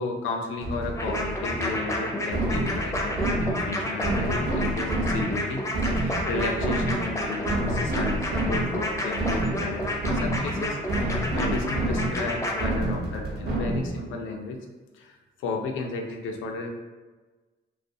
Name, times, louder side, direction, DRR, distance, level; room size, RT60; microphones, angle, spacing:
voice 1, 0.0-14.6 14.9-16.7, left 3 dB, 80° left, 3 dB, 0.4 m, -33 dB
sound 1, 0.6-14.1, right 1 dB, 55° right, 0.6 m, -29 dB
sound 2, 0.9-12.6, left 1 dB, 15° left, 0.5 m, -30 dB
2.4 x 2.3 x 2.6 m, 1.3 s
cardioid pair, 90°, 20 cm